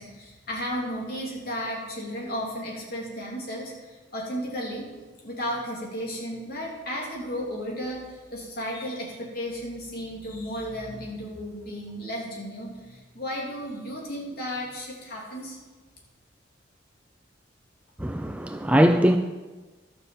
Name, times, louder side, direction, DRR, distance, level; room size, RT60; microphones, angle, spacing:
voice 1, 0.0-4.9 5.2-15.6, equal, 50° left, 3.3 m, -34 dB
voice 2, 18.0-19.2, equal, 5° right, 0.4 m, -21 dB
12.0 x 6.9 x 7.3 m
head